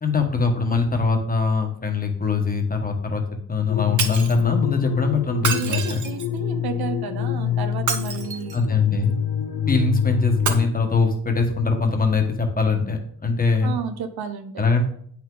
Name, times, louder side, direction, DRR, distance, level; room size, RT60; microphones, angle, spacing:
voice 1, 0.0-6.0 8.5-9.1 9.7-13.7 14.6-14.9, left 4 dB, 25° left, 3 dB, 1.4 m, -22 dB
sound 1, 3.7-10.7, left 9 dB, 85° left, 0.9 m, -26 dB
Shatter, 4.0-4.4 5.3-6.4 7.7-8.7 10.4-10.5, right 6 dB, 50° right, 1.1 m, -27 dB
voice 2, 5.5-8.6 13.6-14.6, right 7 dB, 75° right, 8 dB, 1.0 m, -32 dB
8.5 x 5.9 x 3.9 m, 0.62 s
wide cardioid pair, 130°, 38 cm